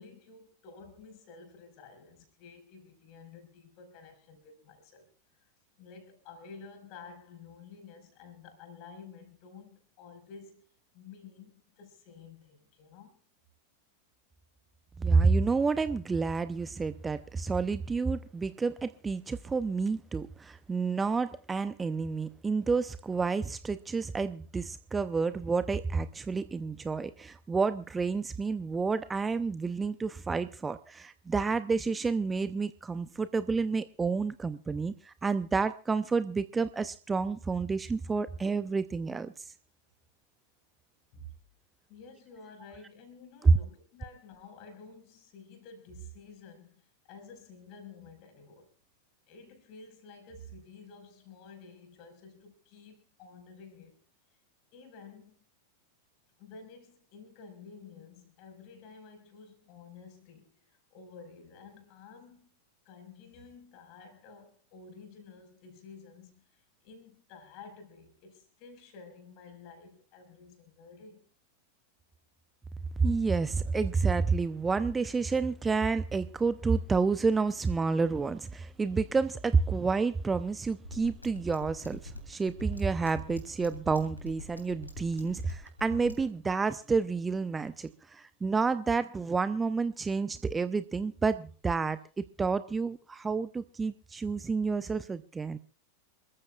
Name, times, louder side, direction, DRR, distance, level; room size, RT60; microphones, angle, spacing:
voice 1, 0.0-5.1 5.8-10.7 10.9-13.2 41.1-41.3 41.9-48.7 49.3-54.0 54.7-55.4 56.4-62.5 62.8-71.3, left 4 dB, 45° left, 5.1 m, -51 dB
voice 2, 15.0-39.5 43.4-43.5 73.0-95.6, right 4 dB, 15° right, 0.6 m, -29 dB
sound 1, 80.8-86.2, left 2 dB, 85° left, 3.2 m, -43 dB
27.5 x 14.5 x 2.4 m
figure-of-eight pair, 90°, 0 cm